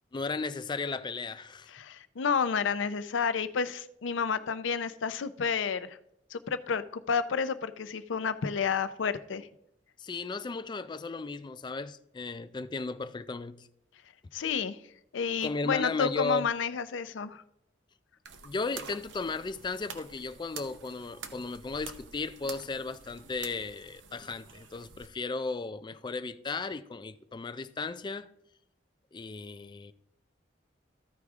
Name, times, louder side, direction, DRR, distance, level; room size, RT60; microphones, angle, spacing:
voice 1, 0.1-1.7 10.0-13.7 15.4-16.5 18.4-28.3 29.1-29.9, left 3 dB, 25° left, 0.4 m, -35 dB
voice 2, 1.7-6.0 6.3-9.5 14.3-14.8 15.1-17.4, left 6 dB, 90° left, 0.5 m, -30 dB
sound 1, 18.2-25.1, right 5 dB, 80° right, 0.8 m, -47 dB
14.0 x 4.8 x 3.5 m
head